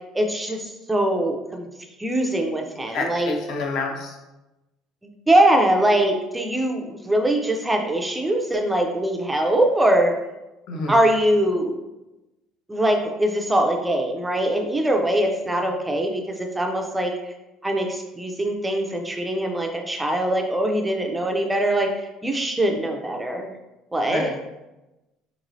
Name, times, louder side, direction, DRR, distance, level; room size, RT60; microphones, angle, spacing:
voice 1, 0.1-1.7 2.0-3.3 5.3-10.1 10.9-11.8 12.7-17.3 17.6-23.5 23.9-24.3, right 1 dB, 5° right, 3 dB, 0.4 m, -22 dB
voice 2, 2.9-4.2 10.7-11.0 24.1-24.4, left 3 dB, 50° left, 2 dB, 0.6 m, -28 dB
4.5 x 3.0 x 2.6 m, 0.99 s
cardioid pair, 165°, 0 cm